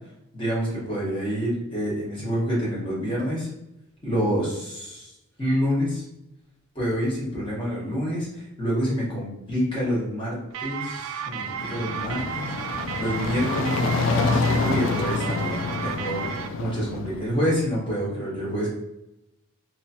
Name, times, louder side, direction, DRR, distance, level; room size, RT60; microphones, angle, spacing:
voice 1, 0.3-3.5 4.0-5.1 5.4-6.0 6.7-12.5 13.0-16.3 16.6-18.7, equal, 25° left, -7 dB, 1.4 m, -27 dB
sound 1, 10.5-16.5, right 8 dB, 75° right, 0.3 m, -33 dB
sound 2, 11.3-17.4, left 3 dB, 65° left, 0.3 m, -27 dB
3.2 x 3.0 x 2.8 m, 0.88 s
head